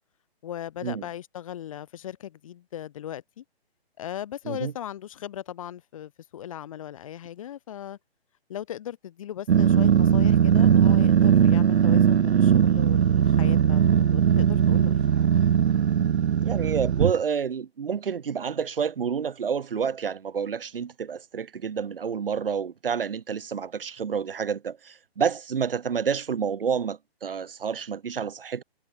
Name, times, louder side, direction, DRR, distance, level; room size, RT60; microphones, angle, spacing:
voice 1, 0.4-3.4 4.0-8.0 8.5-15.1, left 11 dB, 30° left, 3.0 m, -38 dB
Growling, 9.5-17.2, right 8 dB, 90° right, 0.7 m, -19 dB
voice 2, 16.4-28.6, right 7 dB, 60° right, 2.6 m, -29 dB
hypercardioid pair, 170°, 32 cm